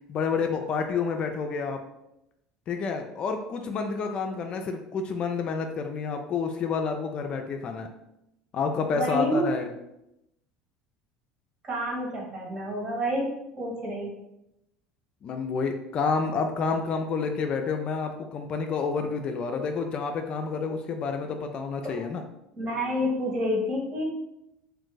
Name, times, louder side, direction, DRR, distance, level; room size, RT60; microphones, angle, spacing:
voice 1, 0.1-1.8 2.7-7.9 8.5-9.7 15.2-22.2, left 5 dB, 45° left, 5 dB, 0.4 m, -29 dB
voice 2, 8.9-9.4 11.6-13.3 13.6-14.1 21.9-22.0 22.6-24.0, equal, 35° right, -2 dB, 1.4 m, -28 dB
2.6 x 2.5 x 3.8 m, 0.85 s
supercardioid pair, 105°, 2 cm